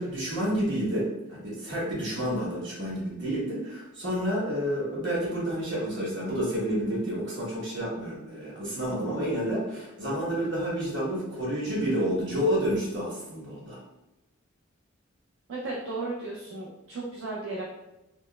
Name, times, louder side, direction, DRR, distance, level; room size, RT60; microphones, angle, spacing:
voice 1, 0.0-13.8, equal, 65° right, -6 dB, 1.2 m, -29 dB
voice 2, 15.5-17.7, right 2 dB, 80° right, -4 dB, 0.5 m, -35 dB
4.1 x 2.0 x 2.3 m, 0.95 s
head